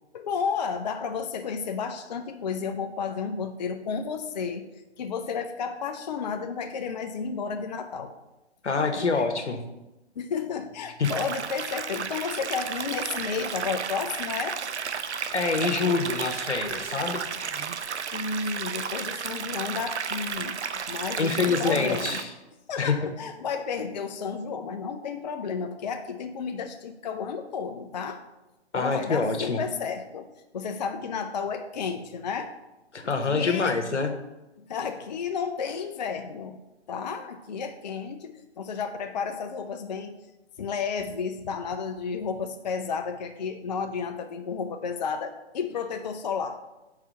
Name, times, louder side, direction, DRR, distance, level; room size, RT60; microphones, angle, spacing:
voice 1, 0.1-4.7 5.0-8.1 8.9-9.3 10.2-14.6 18.1-22.2 22.7-28.2 28.7-32.5 33.3-33.8 34.7-36.6 36.9-40.2 40.6-46.6, left 6 dB, 40° left, 6 dB, 0.4 m, -32 dB
voice 2, 8.6-9.6 11.0-11.1 15.3-17.2 21.2-22.3 22.8-23.0 23.2-23.3 28.7-29.6 32.9-34.1, left 4 dB, 85° left, 6 dB, 1.1 m, -26 dB
sound 1, 11.0-22.2, right 6 dB, 80° right, 0.6 m, -33 dB
4.9 x 4.5 x 6.1 m, 1.0 s
figure-of-eight pair, 140°, 34 cm